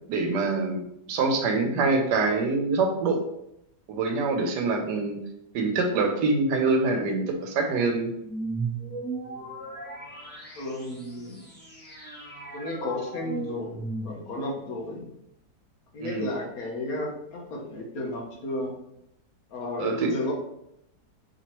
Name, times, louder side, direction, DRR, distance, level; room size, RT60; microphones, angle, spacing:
voice 1, 0.1-3.2 3.9-5.2 5.5-8.1 16.0-16.3 19.8-20.1, right 3 dB, 85° right, 4 dB, 1.3 m, -25 dB
sound 1, 8.2-14.5, right 3 dB, 10° left, 0.6 m, -36 dB
voice 2, 10.6-11.5 12.5-13.8 14.0-15.1 15.9-18.7 19.5-20.3, left 1 dB, 65° left, 0 dB, 1.2 m, -33 dB
4.7 x 3.0 x 2.9 m, 0.79 s
omnidirectional pair, 1.8 m